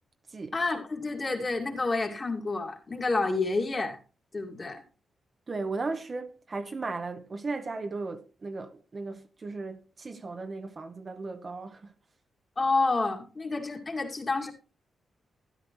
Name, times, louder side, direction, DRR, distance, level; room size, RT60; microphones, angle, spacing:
voice 1, 0.5-4.0 4.3-4.8 12.6-14.5, left 3 dB, 30° left, 2.1 m, -29 dB
voice 2, 5.5-11.9, right 3 dB, 35° right, 0.9 m, -36 dB
13.0 x 11.0 x 3.0 m
cardioid pair, 110°, 0 cm